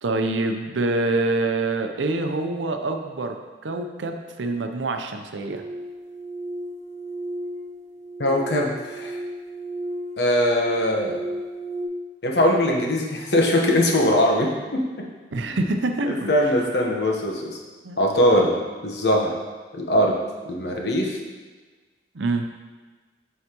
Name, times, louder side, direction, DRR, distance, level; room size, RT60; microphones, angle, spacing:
voice 1, 0.0-3.4 3.6-5.6 15.3-16.5 17.8-18.0 22.1-22.5, right 2 dB, 90° right, 5 dB, 0.6 m, -26 dB
sound 1, 5.5-11.9, right 1 dB, 40° right, 0.6 m, -34 dB
voice 2, 8.2-9.2 10.2-11.2 12.2-15.1 16.1-17.6 18.0-18.5 18.8-19.4 19.7-20.2 20.5-21.2, left 1 dB, 65° left, 0 dB, 1.0 m, -21 dB
8.0 x 5.7 x 2.9 m, 1.4 s
head